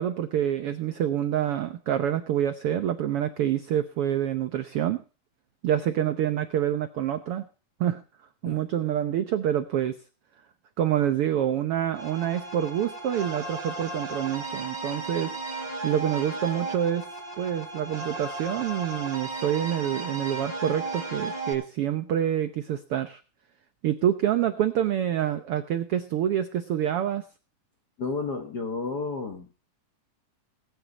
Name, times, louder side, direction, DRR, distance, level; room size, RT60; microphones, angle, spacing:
voice 1, 0.0-5.0 5.6-7.4 7.8-8.0 8.4-10.0 10.8-15.3 15.8-17.1 17.4-23.2 23.8-27.2, right 10 dB, 90° right, 10 dB, 1.2 m, -27 dB
sound 1, 11.9-21.5, right 3 dB, 35° right, 4.4 m, -35 dB
voice 2, 28.0-29.6, left 4 dB, 45° left, 5 dB, 1.3 m, -32 dB
20.0 x 9.3 x 4.0 m, 0.35 s
omnidirectional pair, 3.7 m